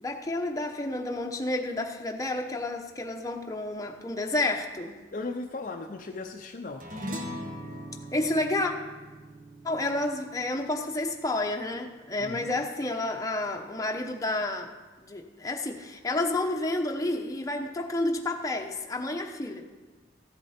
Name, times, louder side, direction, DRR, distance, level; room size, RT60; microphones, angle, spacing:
voice 1, 0.0-4.9 8.1-8.7 9.6-14.7 15.0-19.6, left 2 dB, 20° left, 2 dB, 0.9 m, -30 dB
voice 2, 5.1-6.8 12.2-12.6, left 3 dB, 45° left, 4 dB, 0.6 m, -37 dB
sound 1, 6.8-11.5, equal, 50° right, 1.2 m, -40 dB
14.5 x 8.2 x 4.3 m, 1.2 s
head